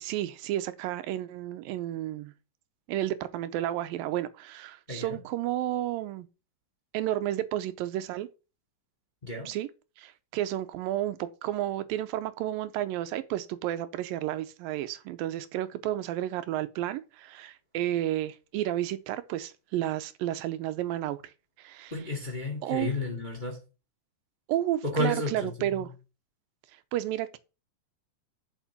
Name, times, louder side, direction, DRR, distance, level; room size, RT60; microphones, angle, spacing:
voice 1, 0.0-2.3 2.9-6.3 6.9-8.3 9.5-9.7 10.0-21.2 21.6-21.9 22.6-22.9 24.5-25.9 26.9-27.4, right 13 dB, 85° right, 2.4 m, -31 dB
voice 2, 4.9-5.2 9.2-9.5 21.9-23.6 24.8-25.9, left 2 dB, 15° left, 1.9 m, -32 dB
7.2 x 5.9 x 7.1 m
omnidirectional pair, 4.1 m